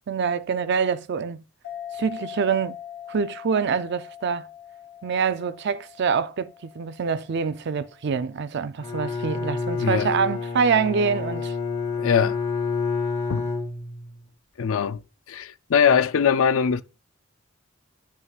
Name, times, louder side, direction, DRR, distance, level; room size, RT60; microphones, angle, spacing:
voice 1, 0.1-1.4 2.0-2.8 3.1-4.5 5.0-11.5, right 6 dB, 55° right, 0.4 m, -25 dB
sound 1, 1.6-8.7, left 10 dB, 50° left, 1.1 m, -42 dB
Bowed string instrument, 8.8-14.2, left 4 dB, 30° left, 1.6 m, -28 dB
voice 2, 9.8-10.1 12.0-12.4 13.3-13.5 14.6-15.0 15.3-16.8, left 7 dB, 80° left, 0.4 m, -21 dB
11.0 x 5.6 x 2.4 m
head